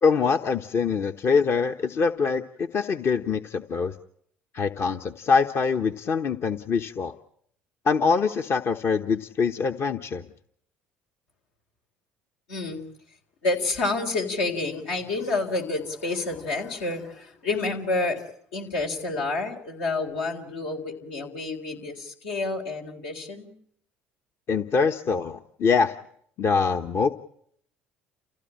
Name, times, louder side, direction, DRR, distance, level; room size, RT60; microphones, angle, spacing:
voice 1, 0.0-3.9 4.5-7.1 7.8-10.2 24.5-25.9 26.4-27.1, left 5 dB, 50° left, 6 dB, 1.0 m, -24 dB
voice 2, 12.5-12.8 13.4-18.2 18.5-23.5, left 3 dB, 85° left, 1 dB, 4.0 m, -29 dB
28.5 x 15.5 x 8.8 m, 0.67 s
hypercardioid pair, 65°, 5 cm